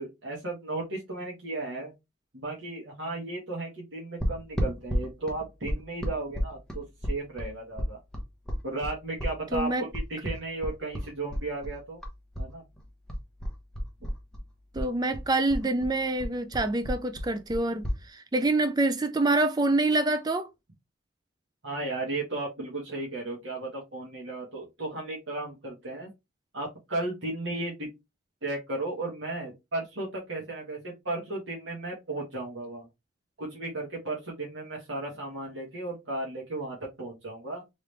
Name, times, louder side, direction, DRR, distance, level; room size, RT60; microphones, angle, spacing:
voice 1, 0.0-1.9 2.3-8.0 8.6-12.0 12.4-12.6 21.6-26.1 26.5-27.9 28.4-32.9 33.4-37.6, right 2 dB, 65° right, 1.5 m, -35 dB
sound 1, 4.2-12.5 12.8-14.5 14.7-18.0, equal, 5° left, 0.9 m, -32 dB
voice 2, 9.5-9.9 14.7-20.5, right 2 dB, 20° right, 0.4 m, -26 dB
3.6 x 3.3 x 3.3 m
head